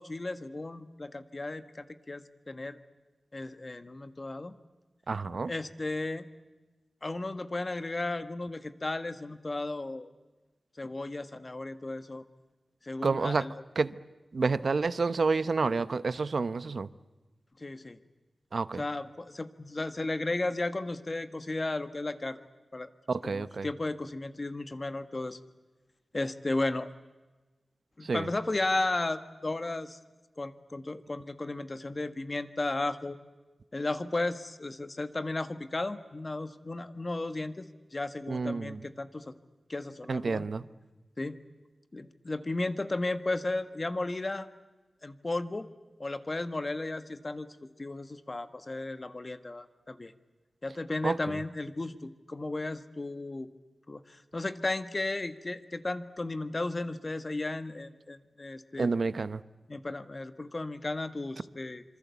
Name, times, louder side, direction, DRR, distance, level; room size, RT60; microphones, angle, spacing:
voice 1, 0.0-2.8 3.3-4.5 5.5-6.2 7.0-10.1 10.8-12.2 12.8-13.6 17.6-18.0 18.8-22.4 22.7-22.9 23.2-25.4 26.1-26.9 28.0-30.0 30.4-33.2 33.7-39.3 39.7-40.5 41.2-41.4 41.9-44.5 45.0-45.7 46.0-47.5 47.8-50.1 50.6-53.5 53.9-59.1 59.7-61.8, left 2 dB, 35° left, 10 dB, 1.6 m, -34 dB
voice 2, 5.1-5.5 13.0-13.4 13.8-14.0 14.3-16.9 18.5-18.8 23.1-23.7 28.1-28.2 38.3-38.8 40.1-40.6 51.0-51.2 58.8-59.4, right 4 dB, 65° right, 15 dB, 0.9 m, -29 dB
26.5 x 25.0 x 8.4 m, 1.2 s
wide cardioid pair, 90°, 0 cm